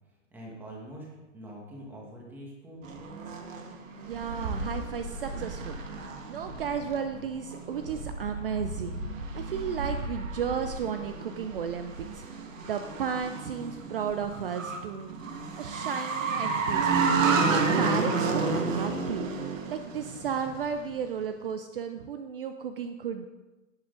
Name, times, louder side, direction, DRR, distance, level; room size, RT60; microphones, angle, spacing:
voice 1, 0.3-1.1 1.3-2.9, equal, 5° right, -3 dB, 1.4 m, -44 dB
sound 1, 2.8-20.9, right 4 dB, 90° right, 1.8 m, -31 dB
voice 2, 4.0-5.8 6.3-9.0 9.3-15.2 15.6-19.3 19.7-23.3, right 7 dB, 45° right, 8 dB, 0.6 m, -34 dB
17.0 x 6.1 x 3.8 m, 1.1 s
hypercardioid pair, 175°, 38 cm